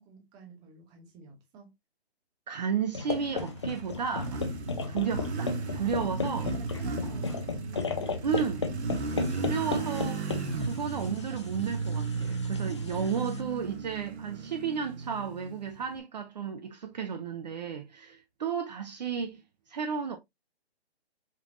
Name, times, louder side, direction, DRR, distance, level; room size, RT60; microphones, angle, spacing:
voice 1, 0.0-1.7 6.4-8.3 10.5-10.9, right 4 dB, 10° right, 0.9 m, -50 dB
voice 2, 2.5-4.5 4.9-6.5 8.2-8.7 9.3-19.4 19.7-20.2, right 6 dB, 40° right, 0.6 m, -33 dB
sound 1, 2.9-13.4, left 4 dB, 25° left, 0.4 m, -35 dB
Motorcycle, 3.3-16.0, right 4 dB, 75° right, 1.1 m, -35 dB
5.2 x 3.4 x 2.5 m
hypercardioid pair, 155°, 33 cm